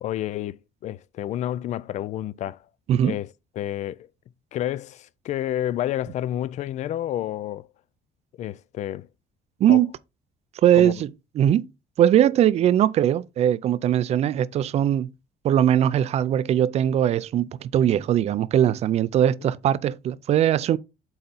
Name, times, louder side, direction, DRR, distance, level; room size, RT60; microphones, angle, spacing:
voice 1, 0.0-2.6 3.0-3.3 3.6-4.1 4.5-7.7 8.4-9.1 9.7-9.8 10.7-10.9 19.4-19.5, left 12 dB, 45° left, 0.4 m, -30 dB
voice 2, 10.6-11.1 11.4-11.7 12.0-15.1 15.4-20.8, right 10 dB, 40° right, 0.4 m, -20 dB
7.8 x 4.2 x 4.0 m
cardioid pair, 165°, 17 cm